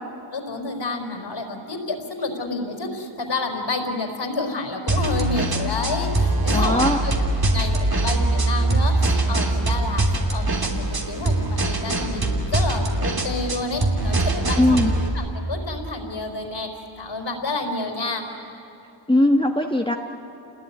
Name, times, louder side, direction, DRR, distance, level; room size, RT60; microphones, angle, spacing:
voice 1, 0.3-7.1 7.5-18.3, left 2 dB, 65° left, 3 dB, 4.3 m, -29 dB
sound 1, 4.9-15.1, right 2 dB, 50° right, 3.0 m, -22 dB
voice 2, 6.5-7.0 14.6-14.9 19.1-19.9, left 1 dB, 10° left, 2 dB, 1.3 m, -19 dB
28.5 x 20.5 x 9.7 m, 2.9 s
cardioid pair, 60°, 47 cm